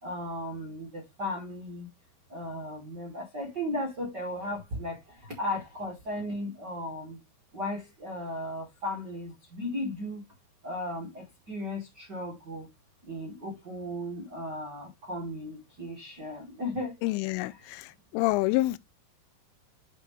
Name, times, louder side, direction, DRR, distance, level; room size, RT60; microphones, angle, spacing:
voice 1, 0.0-1.9 2.3-7.2 7.5-10.2 10.6-12.7 13.1-16.9 17.2-17.6, left 1 dB, 90° right, 0.9 m, -36 dB
voice 2, 17.0-17.5 18.1-18.8, left 19 dB, 85° left, 3.1 m, -26 dB
10.5 x 3.8 x 3.2 m
omnidirectional pair, 5.6 m